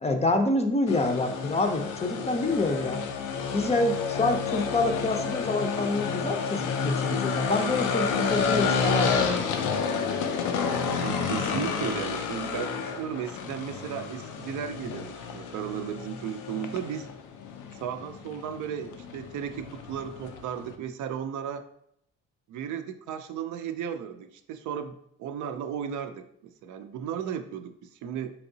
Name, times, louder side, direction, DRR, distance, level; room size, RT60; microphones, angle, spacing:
voice 1, 0.0-3.0 3.5-9.2, left 2 dB, 20° left, 5 dB, 0.5 m, -27 dB
sound 1, 0.9-20.7, left 5 dB, 90° left, 0.5 m, -30 dB
voice 2, 11.0-17.1 17.7-21.6 22.5-24.9 25.2-28.3, right 8 dB, 75° right, 8 dB, 0.5 m, -35 dB
4.6 x 2.8 x 2.6 m, 0.72 s
cardioid pair, 90°, 30 cm